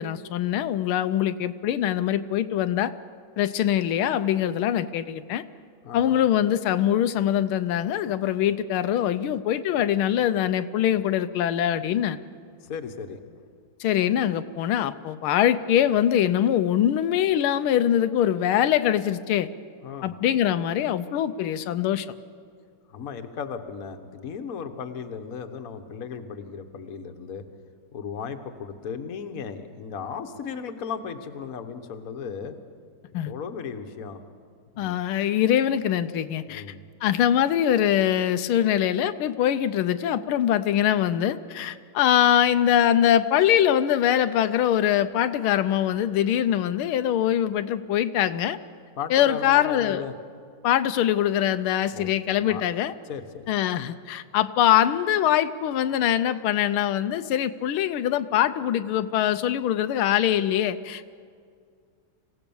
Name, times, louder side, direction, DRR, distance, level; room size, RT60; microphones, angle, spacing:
voice 1, 0.0-2.9 3.4-5.4 5.9-12.2 13.8-19.5 20.0-22.1 33.1-33.3 34.8-36.6 37.0-48.6 49.1-50.0 50.6-52.9 53.5-61.1, left 10 dB, 90° left, 11 dB, 1.6 m, -23 dB
voice 2, 12.6-13.2 19.8-20.2 22.9-27.4 27.9-32.6 33.1-34.2 34.7-35.0 36.5-36.8 49.0-50.1 51.9-52.6 53.1-53.5, left 6 dB, 50° left, 7 dB, 1.4 m, -36 dB
25.5 x 16.5 x 7.1 m, 2.2 s
omnidirectional pair, 2.3 m